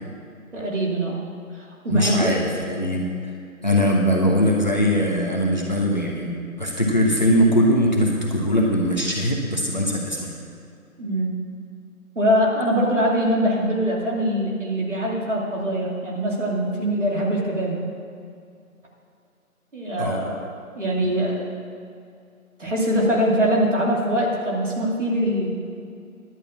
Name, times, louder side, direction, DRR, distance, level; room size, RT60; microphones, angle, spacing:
voice 1, 0.5-1.2 1.6-2.4 11.0-11.4 12.2-17.8 19.7-20.4 20.8-21.5 22.6-25.7, equal, 55° right, -3 dB, 2.8 m, -23 dB
voice 2, 1.9-3.3 3.6-10.3 20.0-20.3 21.0-21.1, equal, 30° left, -2 dB, 1.1 m, -21 dB
11.0 x 6.5 x 8.4 m, 2.4 s
figure-of-eight pair, 165°, 43 cm